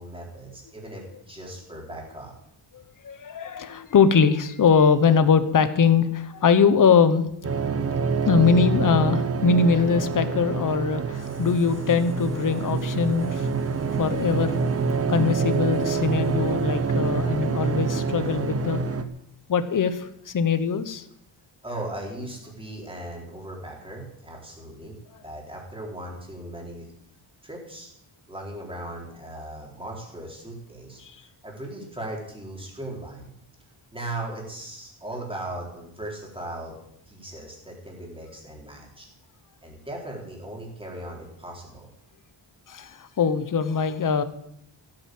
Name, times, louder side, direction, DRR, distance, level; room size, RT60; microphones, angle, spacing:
voice 1, 0.0-2.3 21.6-24.9 25.2-26.9 27.4-27.9 28.3-33.3 33.9-36.8 37.1-39.1 39.6-41.9, right 1 dB, 10° right, -1 dB, 4.1 m, -38 dB
voice 2, 2.7-7.3 8.3-13.5 14.0-14.6 15.1-18.8 19.5-21.0 31.0-31.1 42.7-44.2, left 6 dB, 40° left, 11 dB, 1.1 m, -22 dB
sound 1, 7.4-19.0, right 5 dB, 30° right, 0.9 m, -26 dB
16.0 x 9.0 x 7.8 m, 0.75 s
wide cardioid pair, 175°, 49 cm